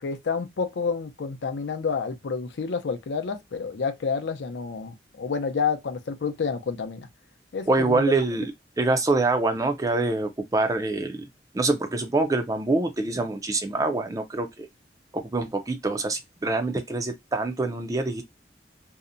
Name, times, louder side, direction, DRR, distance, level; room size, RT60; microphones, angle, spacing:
voice 1, 0.0-7.1 7.5-8.0, left 5 dB, 85° left, 0.5 m, -29 dB
voice 2, 7.7-8.4 8.8-11.3 11.5-14.7 15.1-18.2, right 2 dB, 20° right, 0.4 m, -25 dB
2.7 x 2.0 x 2.5 m
head